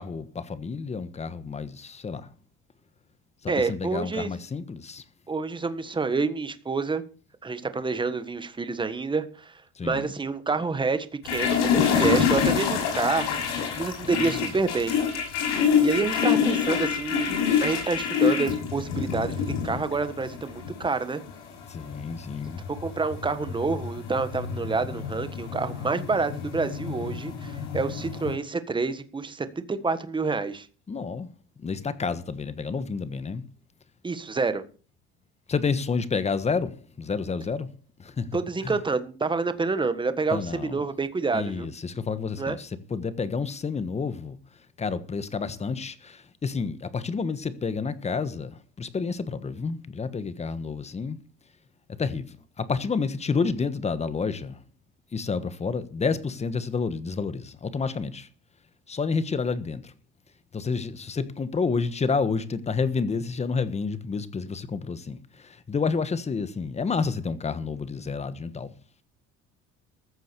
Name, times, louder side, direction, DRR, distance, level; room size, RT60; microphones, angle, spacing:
voice 1, 0.0-2.3 3.4-5.0 9.7-10.1 14.0-14.5 21.7-22.6 30.9-31.3 31.6-33.4 35.5-37.7 38.0-38.4 38.6-38.7 40.3-40.8 41.3-44.4 44.8-51.2 52.0-54.6 55.1-58.3 58.9-59.9 60.5-68.7, left 5 dB, 20° left, 1.3 m, -29 dB
voice 2, 3.5-4.3 5.3-7.0 7.4-15.0 15.8-17.3 17.6-19.4 19.6-21.2 22.7-30.7 34.0-34.6 38.3-41.7 42.4-42.6, right 4 dB, 15° right, 1.4 m, -28 dB
sound 1, 11.2-28.3, left 7 dB, 90° left, 5.5 m, -27 dB
14.5 x 7.5 x 6.9 m
cardioid pair, 125°, 29 cm